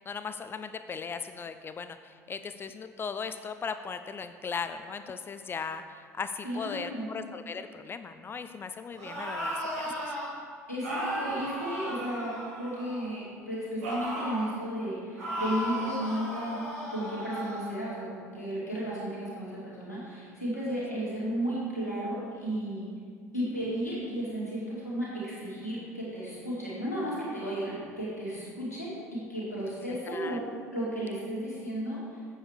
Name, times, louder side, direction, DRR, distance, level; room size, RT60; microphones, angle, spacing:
voice 1, 0.1-10.2 29.9-30.4, left 5 dB, 25° left, 10 dB, 0.4 m, -38 dB
voice 2, 6.4-7.1 10.7-16.6 16.9-22.9 23.3-30.4 30.7-32.2, equal, 90° left, -8 dB, 2.4 m, -34 dB
sound 1, 8.9-10.3 10.8-13.1 13.8-14.5 15.2-17.7, right 1 dB, 70° right, 2.4 m, -35 dB
8.0 x 7.2 x 4.8 m, 2.1 s
figure-of-eight pair, 65°, 8 cm